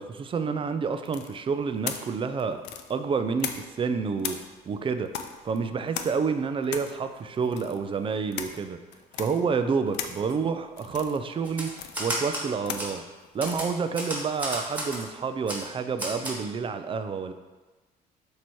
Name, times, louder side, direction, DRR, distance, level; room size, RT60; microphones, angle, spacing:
voice 1, 0.0-2.6 2.9-4.4 4.7-5.1 5.4-8.8 9.2-11.7 12.0-13.0 13.3-17.3, right 5 dB, 30° right, 9 dB, 0.4 m, -29 dB
sound 1, 1.0-3.9 4.2-15.1, left 8 dB, 85° left, 0.5 m, -39 dB
Typewriter, 11.4-12.5 12.8-12.9 13.4-15.0 15.5-15.6 16.0-16.4, right 1 dB, 10° right, 1.6 m, -32 dB
7.5 x 2.9 x 4.6 m, 1.2 s
cardioid pair, 110°, 17 cm